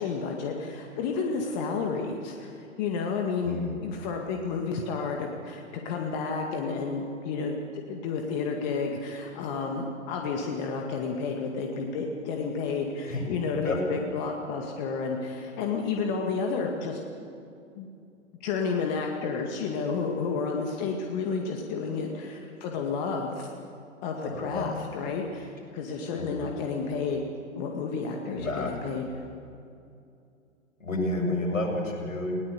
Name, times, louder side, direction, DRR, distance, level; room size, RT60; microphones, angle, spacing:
voice 1, 0.0-17.0 17.7-17.9 18.4-23.5 24.0-27.2 27.5-29.2, left 4 dB, 35° left, 2 dB, 2.1 m, -31 dB
voice 2, 24.2-24.8 26.1-26.5 28.3-28.7 30.8-32.3, left 2 dB, 75° left, 0 dB, 6.9 m, -30 dB
21.0 x 18.5 x 8.3 m, 2.5 s
figure-of-eight pair, 120°, 40 cm